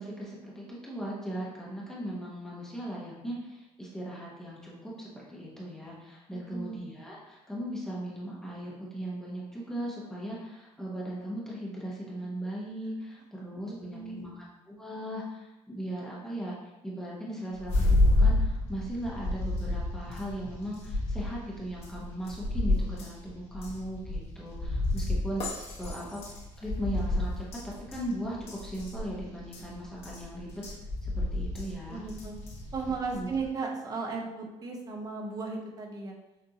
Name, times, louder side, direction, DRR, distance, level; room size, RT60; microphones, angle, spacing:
voice 1, 0.0-16.6 16.8-26.2 26.6-27.6 27.9-30.6 31.0-32.0 33.1-33.3, right 1 dB, 5° left, -6 dB, 0.9 m, -38 dB
voice 2, 6.3-6.8 13.7-14.3 31.9-32.3 32.7-36.1, right 4 dB, 30° right, 1 dB, 0.7 m, -36 dB
sound 1, 17.6-33.5, left 2 dB, 50° left, 1.4 m, -30 dB
6.4 x 2.6 x 2.8 m, 0.98 s
cardioid pair, 160°, 12 cm